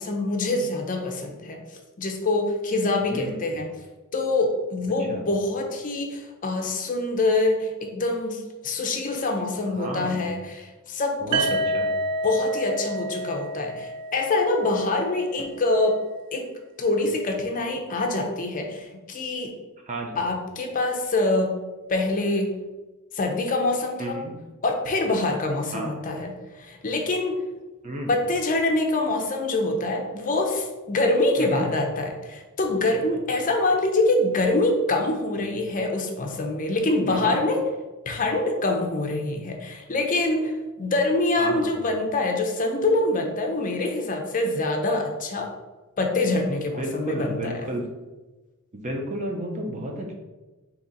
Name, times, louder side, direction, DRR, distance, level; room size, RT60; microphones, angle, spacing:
voice 1, 0.0-1.6 2.0-3.7 4.1-11.5 12.2-16.0 16.3-16.5 16.8-19.5 20.2-21.6 21.9-22.5 23.1-24.2 24.6-27.4 28.1-37.6 38.1-45.5 46.0-47.7, left 2 dB, 35° left, 3 dB, 0.5 m, -25 dB
voice 2, 3.0-3.6 5.1-5.2 9.8-10.2 11.2-11.9 19.9-20.2 24.0-24.3 25.7-25.9 27.8-28.1 31.4-31.7 37.1-37.4 41.4-41.7 46.8-47.8 48.7-50.1, right 1 dB, 30° right, 1 dB, 0.6 m, -32 dB
sound 1, 11.3-15.2, right 1 dB, 90° right, 0.3 m, -29 dB
3.8 x 2.9 x 4.0 m, 1.2 s
head